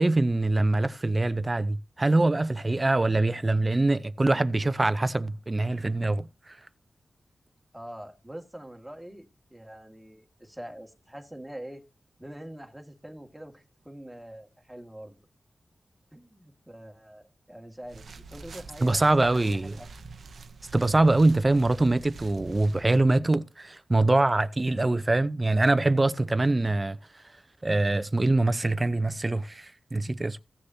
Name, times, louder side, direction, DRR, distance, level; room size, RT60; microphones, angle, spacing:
voice 1, 0.0-6.3 18.8-19.7 20.7-27.0 27.6-30.4, right 2 dB, 30° right, 0.7 m, -24 dB
voice 2, 7.7-11.8 12.2-15.3 16.1-19.9 21.5-21.7, right 1 dB, 5° right, 2.0 m, -44 dB
sound 1, 17.8-23.0, right 4 dB, 80° right, 0.8 m, -46 dB
16.0 x 6.6 x 2.8 m
cardioid pair, 60°, 0 cm